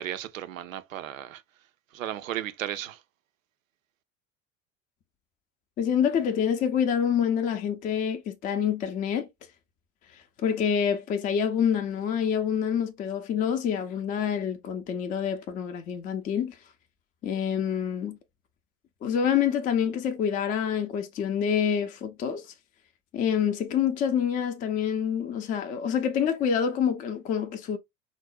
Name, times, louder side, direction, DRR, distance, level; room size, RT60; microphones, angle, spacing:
voice 1, 0.0-1.4 1.9-3.0, right 12 dB, 80° right, 0.5 m, -35 dB
voice 2, 5.8-9.3 10.4-16.5 17.2-18.2 19.0-22.4 23.1-27.8, left 8 dB, 20° left, 0.4 m, -27 dB
3.6 x 2.0 x 2.3 m
figure-of-eight pair, 70°, 40 cm